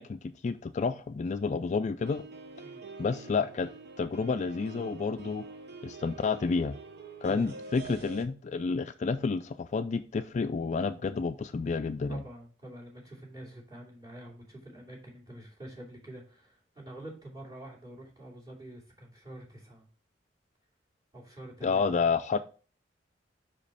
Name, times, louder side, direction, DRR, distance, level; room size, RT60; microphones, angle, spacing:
voice 1, 0.0-2.2 3.0-3.7 4.0-5.5 5.8-6.7 7.2-12.2 21.6-22.4, left 4 dB, 40° left, 10 dB, 0.3 m, -30 dB
sound 1, 2.0-8.3, right 3 dB, 60° right, 0.9 m, -46 dB
voice 2, 12.1-19.9 21.1-22.0, right 1 dB, 20° right, -4 dB, 2.8 m, -47 dB
5.7 x 5.2 x 4.2 m, 0.38 s
head